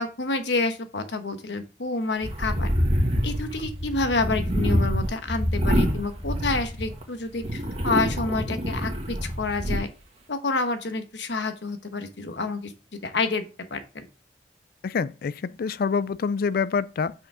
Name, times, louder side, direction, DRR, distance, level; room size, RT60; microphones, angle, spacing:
voice 1, 0.0-2.7 3.2-9.9 10.3-12.7 13.0-14.1, left 3 dB, 80° left, 1.1 m, -28 dB
sound 1, 2.2-7.0 7.4-9.8, equal, 35° right, 1.6 m, -26 dB
voice 2, 14.8-17.1, left 5 dB, 55° left, 0.4 m, -26 dB
6.1 x 4.9 x 4.8 m
head